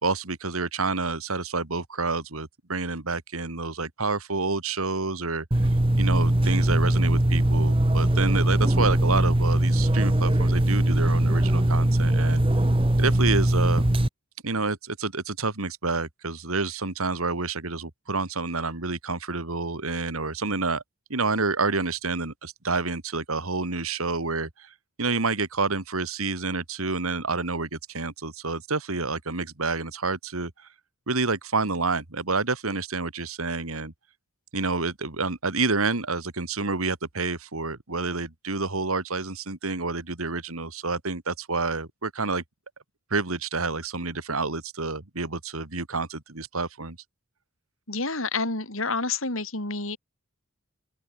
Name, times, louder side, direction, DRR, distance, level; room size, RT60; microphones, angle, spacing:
voice 1, 0.0-5.4 6.0-12.4 13.0-13.8 14.4-20.8 21.1-24.7 25.0-30.5 31.1-33.9 34.5-42.4 43.1-47.0, right 3 dB, 85° right, 2.4 m, -28 dB
sound 1, 5.5-14.1, right 1 dB, 25° right, 1.1 m, -21 dB
voice 2, 47.9-50.0, left 3 dB, 70° left, 5.1 m, -29 dB
open air
head